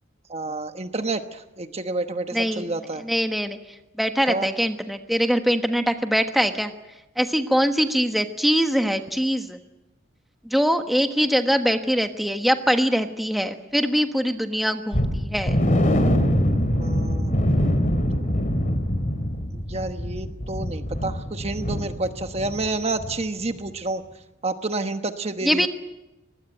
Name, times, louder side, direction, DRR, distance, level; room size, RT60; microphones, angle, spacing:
voice 1, 0.3-3.0 4.3-4.5 16.8-17.3 19.5-24.0 24.4-25.7, right 2 dB, 30° right, 7 dB, 1.1 m, -29 dB
voice 2, 2.3-2.6 3.0-3.6 4.0-6.7 7.2-9.6 10.4-15.6 25.4-25.7, equal, ahead, 6 dB, 1.3 m, -22 dB
sound 1, 14.9-22.7 23.0-23.1 23.6-23.7, equal, 40° left, 2.8 m, -24 dB
24.5 x 20.0 x 9.1 m, 0.98 s
head